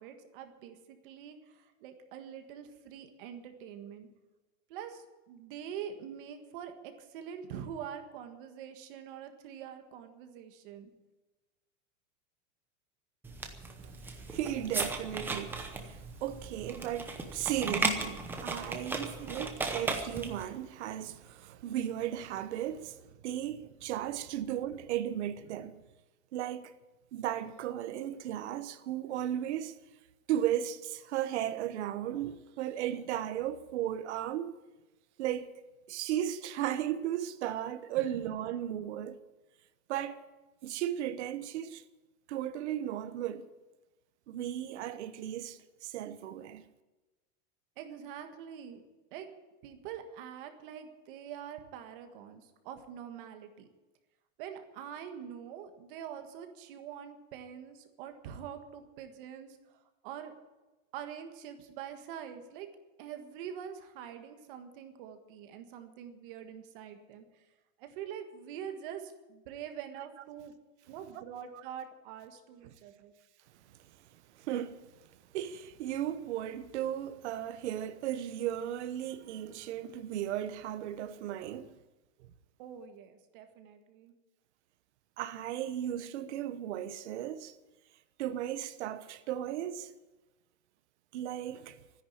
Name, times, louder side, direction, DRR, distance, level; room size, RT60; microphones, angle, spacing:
voice 1, 0.0-4.1 4.7-10.9 47.8-48.8 49.1-49.3 49.6-53.7 54.4-60.3 60.9-62.7 63.0-67.4 67.8-70.5 70.9-73.1 82.6-84.1, right 8 dB, 40° right, 1.7 m, -45 dB
sound 1, 13.2-20.4, right 3 dB, 5° right, 0.8 m, -36 dB
voice 2, 13.8-23.0 23.2-25.8 26.3-26.7 27.1-29.7 30.3-34.5 35.2-35.5 35.9-39.2 39.9-40.2 40.6-41.8 42.3-43.5 44.3-46.7 71.5-71.6 72.6-72.7 74.3-74.8 75.3-81.7 85.2-87.5 88.2-89.9 91.1-91.8, right 11 dB, 60° right, 1.1 m, -35 dB
13.5 x 10.5 x 8.7 m
supercardioid pair, 170°, 39 cm